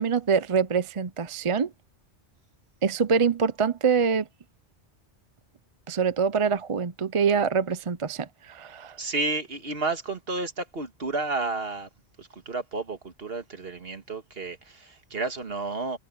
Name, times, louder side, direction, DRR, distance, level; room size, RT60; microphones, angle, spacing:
voice 1, 0.0-1.7 2.8-4.3 5.9-9.0, right 6 dB, 35° right, 0.6 m, -25 dB
voice 2, 9.0-11.9 12.2-16.0, right 3 dB, 60° right, 2.0 m, -31 dB
omnidirectional pair, 1.2 m